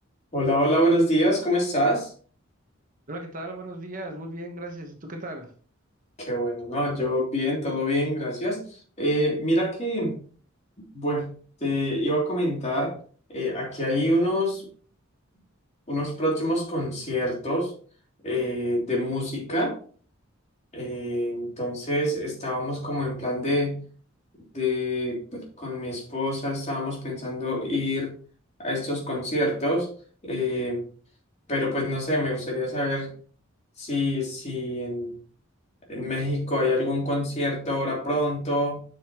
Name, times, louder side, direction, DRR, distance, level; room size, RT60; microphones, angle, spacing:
voice 1, 0.3-2.1 6.2-10.2 10.9-11.3 11.6-13.0 13.3-14.6 15.9-17.7 18.2-19.7 20.7-23.8 24.5-28.1 28.6-29.9 30.2-30.8 31.5-33.1 33.8-35.2 35.9-38.8, equal, 30° left, -1 dB, 3.1 m, -26 dB
voice 2, 3.1-5.5, right 1 dB, 40° right, 3 dB, 1.2 m, -36 dB
9.2 x 6.6 x 3.0 m, 0.43 s
head